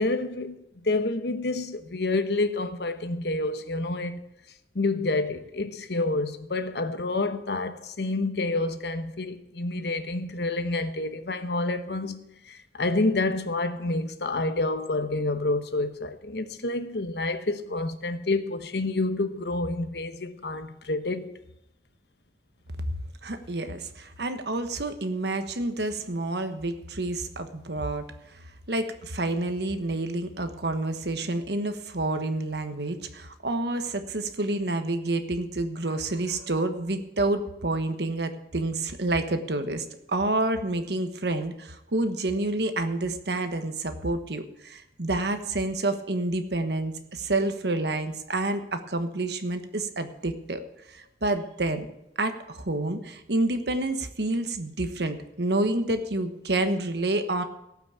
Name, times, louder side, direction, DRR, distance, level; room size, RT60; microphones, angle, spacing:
voice 1, 0.0-4.2 4.7-21.3, left 2 dB, 70° left, 1.0 m, -28 dB
voice 2, 23.2-28.0 28.7-50.6 50.9-51.9 52.2-57.4, right 2 dB, 75° right, 1.2 m, -28 dB
17.5 x 6.1 x 7.1 m
head